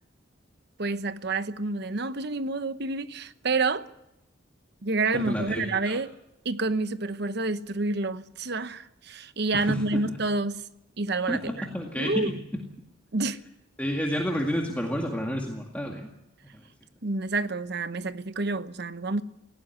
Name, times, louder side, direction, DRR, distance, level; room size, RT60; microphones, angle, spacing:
voice 1, 0.8-3.8 4.8-6.1 6.4-10.6 11.0-11.7 11.9-12.3 13.1-13.4 17.0-19.2, right 3 dB, 55° right, 1.0 m, -28 dB
voice 2, 5.1-6.0 9.5-10.2 11.3-12.6 13.8-16.1, equal, 10° left, 2.0 m, -30 dB
18.5 x 16.5 x 9.7 m
head